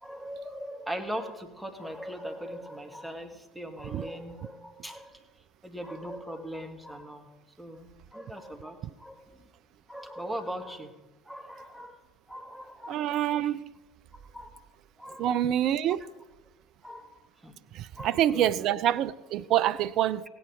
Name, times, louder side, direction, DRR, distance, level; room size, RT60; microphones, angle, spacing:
voice 1, 0.0-5.1 5.6-7.3 7.6-9.2 9.9-10.9 11.3-12.0 12.3-13.5 14.3-14.6 15.0-15.3 16.8-17.2 17.4-17.5 18.0-18.7, equal, 5° right, 1.9 m, -40 dB
voice 2, 12.9-13.7 15.2-16.0 17.7-20.2, right 11 dB, 50° right, 0.4 m, -26 dB
16.5 x 9.3 x 5.1 m
figure-of-eight pair, 65°, 0 cm